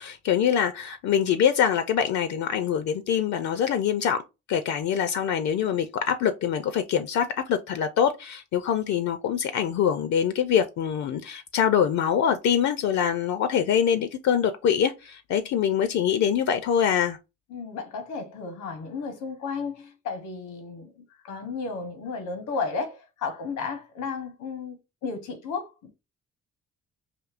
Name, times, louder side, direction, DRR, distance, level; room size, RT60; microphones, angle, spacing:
voice 1, 0.0-4.2 4.5-17.2, left 8 dB, 65° left, 0.5 m, -24 dB
voice 2, 17.5-25.9, left 4 dB, 85° left, 1.0 m, -33 dB
5.1 x 2.6 x 2.4 m
cardioid pair, 90°, 30 cm